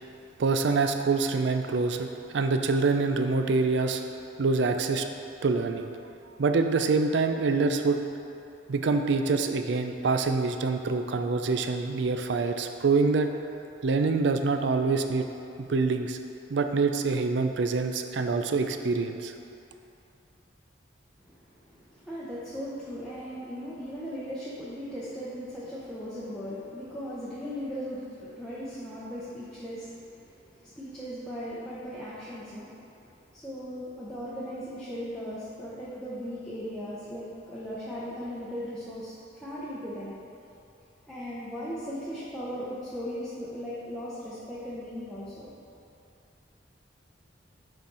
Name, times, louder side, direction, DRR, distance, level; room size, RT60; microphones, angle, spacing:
voice 1, 0.4-4.0 4.4-5.1 5.4-5.9 6.4-8.0 8.7-13.3 13.8-15.3 15.6-16.2 16.5-19.3, right 4 dB, 65° right, 6 dB, 0.4 m, -25 dB
voice 2, 21.2-32.8 33.3-40.1 41.1-45.5, equal, 5° left, -10 dB, 0.8 m, -38 dB
6.9 x 4.3 x 4.7 m, 2.8 s
head